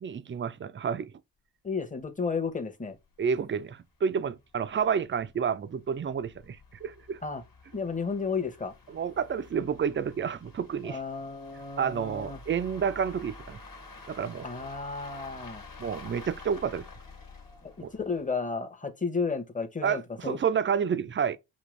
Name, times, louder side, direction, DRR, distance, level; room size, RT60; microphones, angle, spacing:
voice 1, 0.0-1.1 3.2-7.2 8.9-11.0 11.8-13.6 14.1-14.5 15.8-16.9 17.8-17.9 19.8-21.4, right 7 dB, 30° right, 0.4 m, -30 dB
voice 2, 1.6-3.0 7.2-7.4 7.7-8.7 10.9-12.4 14.4-15.6 17.8-20.4, left 4 dB, 20° left, 0.9 m, -33 dB
sound 1, 2.4-2.5 2.9-3.0 3.3-3.4 4.1-18.4, left 3 dB, 50° left, 1.3 m, -49 dB
5.2 x 2.9 x 3.2 m
cardioid pair, 75°, 42 cm